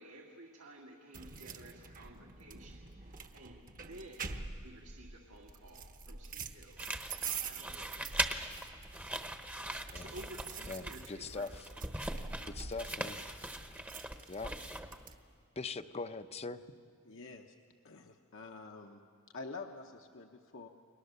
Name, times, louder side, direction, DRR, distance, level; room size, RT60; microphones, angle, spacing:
voice 1, 0.0-4.3 4.6-6.8 7.1-8.6 9.8-11.6, right 1 dB, 75° right, 0 dB, 2.1 m, -53 dB
sound 1, 1.1-15.2, right 5 dB, 40° right, 1.1 m, -46 dB
sound 2, 6.8-15.1, right 1 dB, 5° right, 0.9 m, -41 dB
voice 2, 10.7-11.5 12.4-13.2 14.3-14.5 15.6-16.6, left 3 dB, 30° left, 10 dB, 0.7 m, -41 dB
voice 3, 17.0-17.5 17.8-19.0 19.3-20.7, left 3 dB, 60° left, 3 dB, 1.0 m, -47 dB
30.0 x 22.0 x 6.8 m, 2.2 s
head